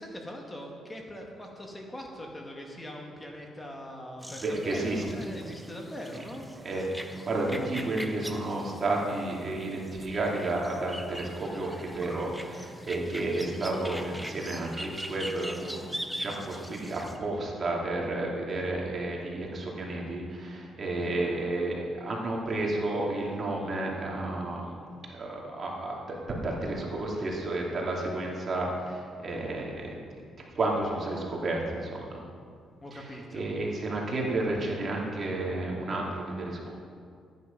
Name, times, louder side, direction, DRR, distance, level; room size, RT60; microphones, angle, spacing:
voice 1, 0.0-6.4 20.9-21.2 32.8-33.4, equal, 20° left, 1 dB, 1.9 m, -42 dB
sound 1, 4.2-17.2, equal, ahead, 1.0 m, -42 dB
voice 2, 4.4-5.0 6.6-24.7 25.1-30.0 30.5-32.2 32.9-36.7, right 2 dB, 45° right, -2 dB, 2.7 m, -31 dB
13.5 x 9.5 x 5.4 m, 2.2 s
cardioid pair, 90°, 0 cm